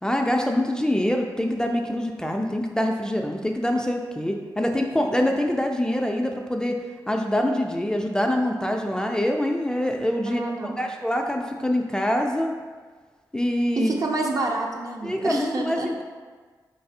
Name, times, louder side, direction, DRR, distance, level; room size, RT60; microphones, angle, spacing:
voice 1, 0.0-6.8 7.1-10.4 10.8-12.6 13.3-13.9 15.0-16.0, left 1 dB, 10° left, 2 dB, 0.3 m, -25 dB
voice 2, 10.3-10.8 13.8-15.9, right 2 dB, 50° right, 1 dB, 0.6 m, -28 dB
3.9 x 3.2 x 2.7 m, 1.5 s
cardioid pair, 70°, 7 cm